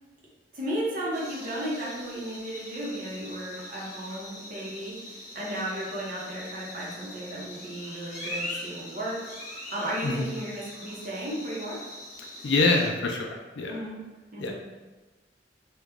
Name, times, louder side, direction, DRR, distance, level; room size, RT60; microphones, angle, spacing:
voice 1, 0.5-9.3 9.7-11.8 13.7-14.0 14.3-14.6, right 1 dB, 50° right, -5 dB, 0.9 m, -34 dB
sound 1, 1.1-12.9, left 1 dB, 40° left, 0.9 m, -42 dB
voice 2, 12.4-13.8 14.4-14.7, left 3 dB, 80° left, 1 dB, 0.4 m, -26 dB
3.0 x 2.3 x 3.5 m, 1.2 s
head